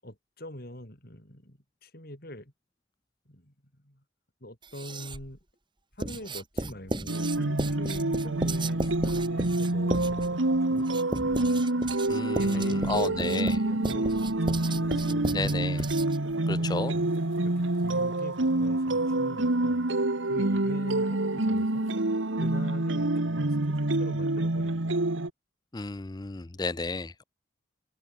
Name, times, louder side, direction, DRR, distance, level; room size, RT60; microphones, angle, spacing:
voice 1, 0.0-2.5 3.2-4.0 4.4-5.4 5.9-11.6 12.4-15.7 16.6-17.1 17.4-19.9 20.2-21.8 22.4-25.1, left 1 dB, 50° left, 7.9 m, -44 dB
Writing, 4.6-5.4 6.0-16.3, right 1 dB, 25° right, 2.7 m, -35 dB
sound 1, 7.1-25.3, right 2 dB, 80° right, 1.7 m, -27 dB
sound 2, 8.1-22.3, left 1 dB, 90° left, 5.0 m, -52 dB
voice 2, 12.1-13.5 15.3-15.8 16.5-16.9 25.7-27.2, left 3 dB, 20° left, 0.5 m, -32 dB
open air
head